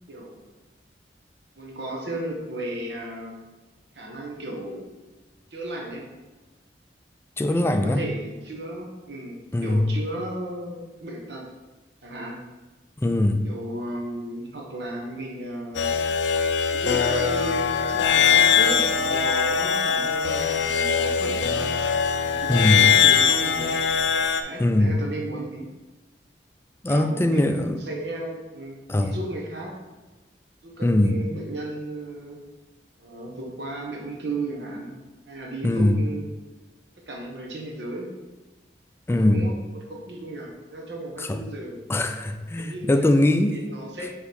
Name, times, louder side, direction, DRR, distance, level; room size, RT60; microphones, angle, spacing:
voice 1, 0.1-0.4 1.6-3.4 3.9-4.9 5.5-6.1 7.5-11.4 12.0-12.4 13.4-15.9 16.7-21.7 22.2-23.7 24.4-25.7 26.9-29.8 30.6-32.4 33.0-35.0 35.3-36.3 37.0-38.1 39.1-39.5 39.9-41.8 42.6-43.1 43.5-44.1, right 1 dB, 70° right, 0 dB, 1.2 m, -34 dB
voice 2, 7.4-8.0 9.5-9.9 13.0-13.5 22.5-22.8 24.6-25.0 26.8-27.7 28.9-29.2 30.8-31.2 35.6-36.0 39.1-39.5 41.2-41.4 41.9-43.6, left 1 dB, 15° left, 7 dB, 0.3 m, -21 dB
sound 1, 15.7-24.4, left 7 dB, 85° left, 0.4 m, -21 dB
4.8 x 3.9 x 5.1 m, 1.2 s
head